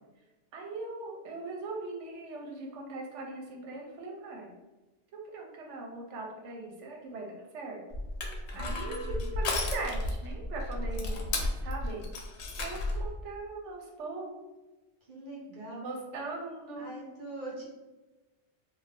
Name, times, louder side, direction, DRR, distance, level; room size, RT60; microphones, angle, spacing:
voice 1, 0.5-4.5 5.1-7.8 8.5-11.2 11.6-12.1 12.6-14.3 15.8-16.9, right 3 dB, 80° right, 0 dB, 0.9 m, -40 dB
Crushing, 7.9-13.1, left 2 dB, 75° left, 0.8 m, -33 dB
voice 2, 8.5-9.3 10.9-11.2 15.0-15.8 16.8-17.7, right 2 dB, 50° right, -5 dB, 0.9 m, -43 dB
2.6 x 2.1 x 3.3 m, 1.1 s
omnidirectional pair, 1.2 m